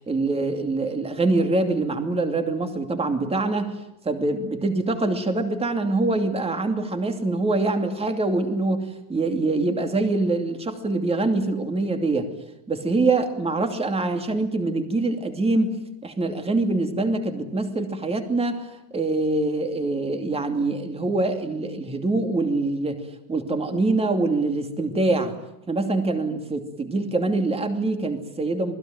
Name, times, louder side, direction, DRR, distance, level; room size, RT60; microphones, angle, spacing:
voice 1, 0.0-12.3 12.7-15.8 16.0-18.6 18.9-23.0 23.3-25.3 25.7-28.7, right 2 dB, 15° right, 6 dB, 2.7 m, -24 dB
28.0 x 20.0 x 9.3 m, 0.85 s
cardioid pair, 165°, 46 cm